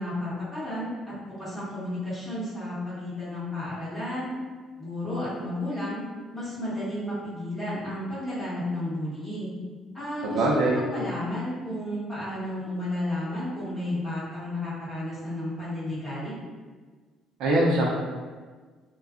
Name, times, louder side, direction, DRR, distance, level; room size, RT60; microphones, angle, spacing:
voice 1, 0.0-4.3 4.8-6.0 6.3-9.5 9.9-16.3, left 1 dB, 5° left, -11 dB, 1.2 m, -32 dB
voice 2, 10.2-10.8 17.4-17.9, right 1 dB, 75° right, -3 dB, 0.6 m, -22 dB
2.4 x 2.3 x 3.6 m, 1.4 s
cardioid pair, 155°, 0 cm